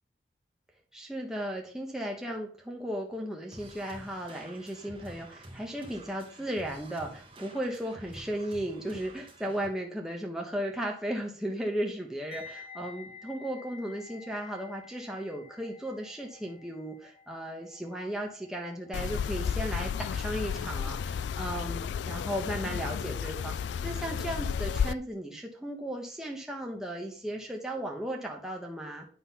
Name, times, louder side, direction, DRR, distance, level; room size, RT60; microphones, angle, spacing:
voice 1, 0.9-29.1, right 1 dB, 5° right, 0 dB, 1.2 m, -36 dB
sound 1, 3.5-9.7, right 1 dB, 30° right, 1.4 m, -49 dB
sound 2, 12.3-21.3 21.5-21.8, left 5 dB, 35° left, 1.2 m, -52 dB
sound 3, 18.9-24.9, left 7 dB, 80° left, 0.3 m, -32 dB
9.5 x 4.0 x 5.6 m, 0.43 s
head